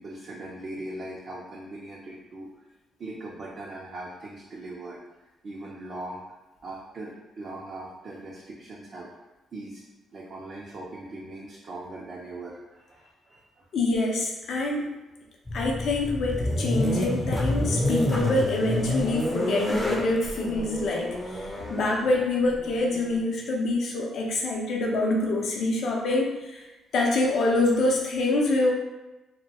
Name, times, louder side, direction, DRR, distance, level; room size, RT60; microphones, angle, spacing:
voice 1, 0.0-2.5 3.0-5.0 5.4-6.2 6.6-9.1 9.5-9.8 10.1-13.6, right 2 dB, 50° right, -4 dB, 0.4 m, -40 dB
voice 2, 13.7-14.9 15.5-26.6 26.9-28.7, left 2 dB, 65° left, -1 dB, 0.5 m, -26 dB
sound 1, 15.5-23.2, left 1 dB, 15° left, 0.4 m, -29 dB
2.2 x 2.1 x 2.8 m, 1.0 s
cardioid pair, 90°, 0 cm